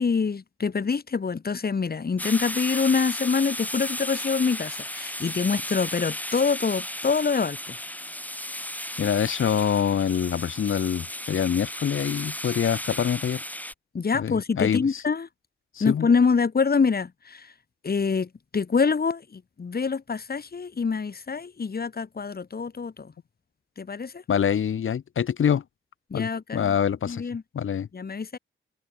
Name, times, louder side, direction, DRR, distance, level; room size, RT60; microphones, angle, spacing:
voice 1, 0.0-7.7 13.9-15.3 15.8-17.5 17.8-23.1 23.8-24.2 26.1-26.7 27.1-27.4 27.9-28.4, left 5 dB, 50° left, 4.2 m, -25 dB
sound 1, 2.2-13.7, left 1 dB, 5° left, 7.1 m, -34 dB
voice 2, 9.0-13.4 14.1-15.0 15.7-16.1 24.3-25.6 26.1-27.2 27.5-27.9, left 8 dB, 75° left, 3.8 m, -25 dB
cardioid pair, 65°, 21 cm